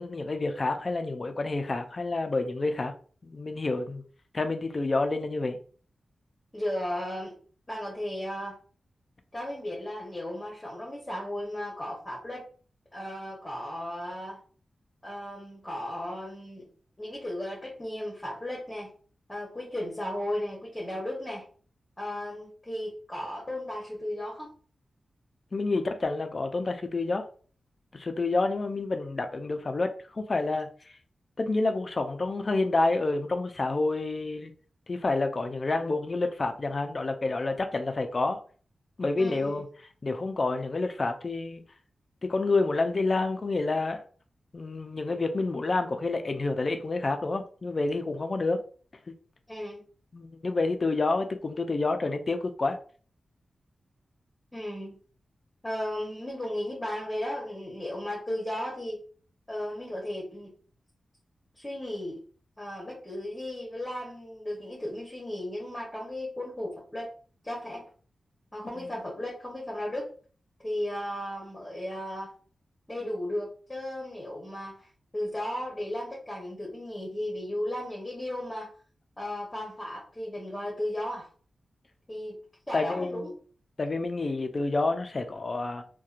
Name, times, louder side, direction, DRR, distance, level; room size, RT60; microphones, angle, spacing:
voice 1, 0.0-2.9 3.2-4.0 4.3-5.6 25.5-27.3 27.9-30.7 31.4-34.5 34.9-38.4 39.0-39.7 40.0-41.6 42.2-44.0 44.5-48.6 50.1-52.8 68.8-68.9 82.7-83.3 83.8-85.8, left 3 dB, 45° left, 0.4 m, -28 dB
voice 2, 6.5-7.3 7.7-8.6 9.3-12.4 12.9-14.4 15.0-16.7 17.0-18.9 19.3-21.4 22.0-24.5 39.2-39.6 49.5-49.8 54.5-55.0 55.6-59.0 59.5-60.5 61.6-62.2 62.6-67.1 67.4-67.8 68.5-70.1 70.6-72.3 72.9-74.9 75.1-78.7 79.2-81.3 82.1-82.4 82.7-83.4, left 1 dB, 20° left, 0.9 m, -35 dB
2.8 x 2.2 x 2.4 m
cardioid pair, 75°, 0 cm